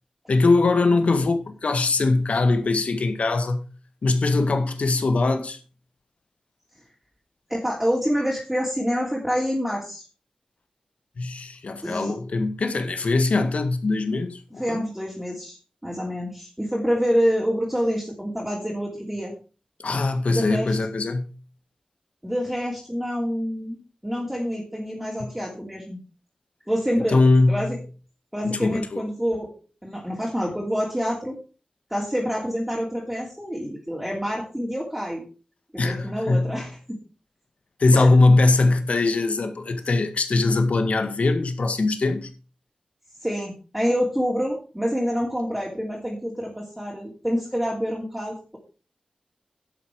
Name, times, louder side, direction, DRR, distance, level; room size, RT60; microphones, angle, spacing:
voice 1, 0.3-3.6 4.0-5.6 11.2-14.8 19.8-21.3 25.2-25.3 27.1-27.7 28.4-29.0 35.8-36.6 37.8-42.3, left 3 dB, 70° left, 1.8 m, -21 dB
voice 2, 7.5-10.0 11.8-12.1 14.6-15.6 15.8-19.3 20.3-20.8 22.2-26.0 26.7-27.2 27.5-27.8 28.3-29.5 29.8-31.4 31.9-35.2 35.7-37.0 37.9-38.1 43.2-48.6, equal, 5° right, 3.0 m, -27 dB
11.0 x 8.5 x 4.8 m
wide cardioid pair, 95°, 2 cm